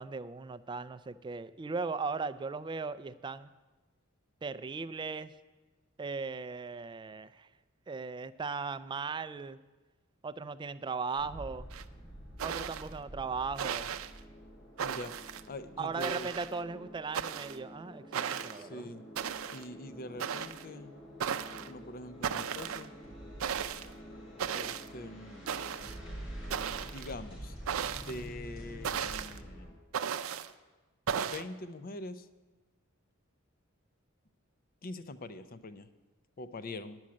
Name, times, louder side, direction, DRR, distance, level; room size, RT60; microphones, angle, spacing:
voice 1, 0.0-3.5 4.4-5.3 6.0-7.5 7.9-9.6 10.2-11.7 12.4-13.9 15.8-18.9, right 4 dB, 25° right, 14 dB, 0.3 m, -38 dB
sound 1, 11.2-29.7, equal, 65° left, 4.2 m, -48 dB
sound 2, 11.7-11.8 12.4-12.9 13.6-14.1 14.8-15.4 16.0-16.6 17.1-17.6 18.1-18.6 19.2-19.6 20.2-20.6 21.2-21.7 22.2-22.9 23.4-23.9 24.4-24.9 25.5-26.0 26.5-27.1 27.7-28.2 28.8-29.4 29.9-30.5 31.1-31.4, right 8 dB, 80° right, 0.5 m, -35 dB
voice 2, 14.8-16.3 18.5-19.0 19.5-20.9 21.6-22.9 24.5-25.6 26.7-27.6 27.9-29.7 31.2-32.3 34.8-35.9 36.4-37.0, left 2 dB, 45° left, 12 dB, 0.6 m, -44 dB
10.5 x 6.3 x 8.5 m, 1.2 s
head